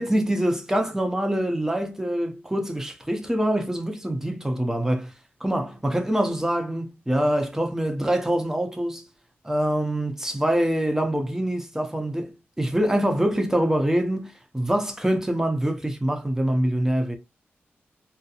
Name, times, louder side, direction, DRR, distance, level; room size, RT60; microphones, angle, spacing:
voice 1, 0.0-5.1 5.4-9.0 9.4-12.3 12.6-17.2, right 1 dB, 10° right, 0.8 m, -25 dB
2.8 x 2.1 x 2.4 m
cardioid pair, 65°, 4 cm